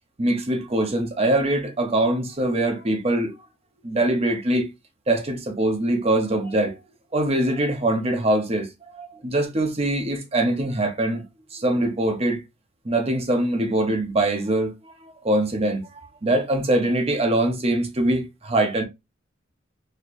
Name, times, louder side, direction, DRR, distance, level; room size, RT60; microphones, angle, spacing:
voice 1, 0.2-3.3 3.8-4.7 5.1-6.8 7.1-11.2 11.5-12.4 12.8-18.8, right 1 dB, 30° right, 0.9 m, -23 dB
4.3 x 2.9 x 2.5 m
head